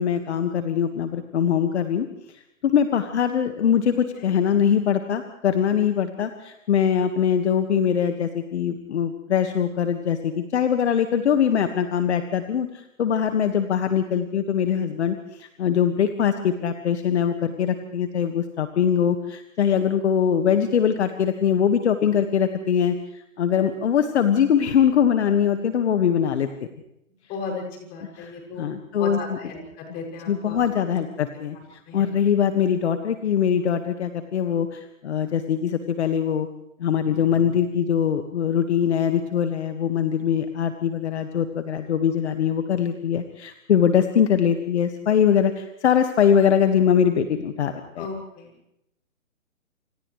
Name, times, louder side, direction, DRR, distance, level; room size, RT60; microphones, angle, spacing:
voice 1, 0.0-2.1 2.3-26.5 28.1-29.4 30.3-36.5 36.8-48.1, left 8 dB, 55° left, 7 dB, 1.7 m, -22 dB
voice 2, 27.3-28.6 29.0-30.6 30.8-30.9 31.9-32.1 48.0-48.5, left 4 dB, 25° left, 1 dB, 6.5 m, -35 dB
29.5 x 28.0 x 3.2 m, 0.82 s
hypercardioid pair, 150°, 41 cm